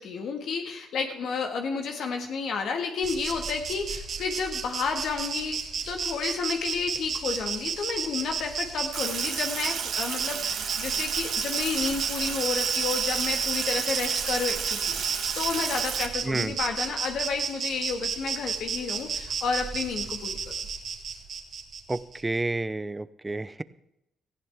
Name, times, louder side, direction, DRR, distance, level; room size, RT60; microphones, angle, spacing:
voice 1, 0.0-15.0 15.3-20.4, left 5 dB, 70° left, 4 dB, 1.8 m, -31 dB
Insect, 3.0-22.2, right 6 dB, 55° right, 1.9 m, -32 dB
Sink (filling or washing), 8.9-16.1, right 7 dB, 75° right, 1.9 m, -33 dB
voice 2, 16.2-16.5 21.9-23.6, right 2 dB, 15° right, 16 dB, 0.6 m, -30 dB
18.0 x 15.0 x 3.6 m, 0.82 s
cardioid pair, 90°, 0 cm